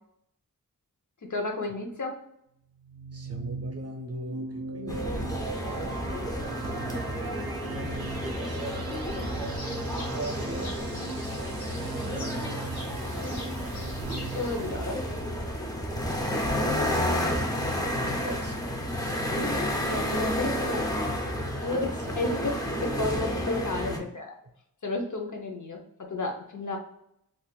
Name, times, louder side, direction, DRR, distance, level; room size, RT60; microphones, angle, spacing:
voice 1, 1.3-2.2 8.9-9.3 11.9-12.6 14.3-15.0 19.3-20.9 21.6-21.9 22.2-24.3 24.8-26.8, left 2 dB, 55° left, 3 dB, 0.7 m, -32 dB
sound 1, 2.8-15.3, right 4 dB, 85° right, 0.5 m, -39 dB
voice 2, 3.1-8.8 9.9-10.8 12.2-12.5 17.9-18.7 21.5-22.2 23.9-24.0, right 1 dB, 45° right, 3 dB, 0.6 m, -40 dB
sound 2, 4.9-24.0, equal, 10° left, 0.5 m, -31 dB
sound 3, 9.3-14.5, left 2 dB, 80° left, 1.2 m, -46 dB
2.5 x 2.5 x 3.8 m, 0.77 s
wide cardioid pair, 90°, 36 cm